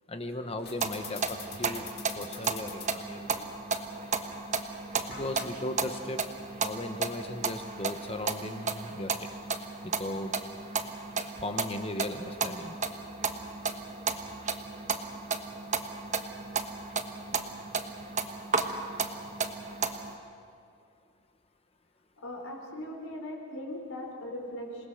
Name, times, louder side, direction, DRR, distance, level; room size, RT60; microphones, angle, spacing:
voice 1, 0.1-1.9 2.1-3.6 5.1-6.2 6.6-9.3 9.8-10.3 11.4-12.8, left 1 dB, 25° left, 6 dB, 1.1 m, -37 dB
sound 1, 0.6-10.6, left 7 dB, 45° left, 2.5 m, -49 dB
sound 2, 0.8-20.1, right 4 dB, 35° right, 1.2 m, -34 dB
voice 2, 22.2-24.9, left 1 dB, 75° left, 0 dB, 4.5 m, -39 dB
27.5 x 19.5 x 6.5 m, 2.3 s
head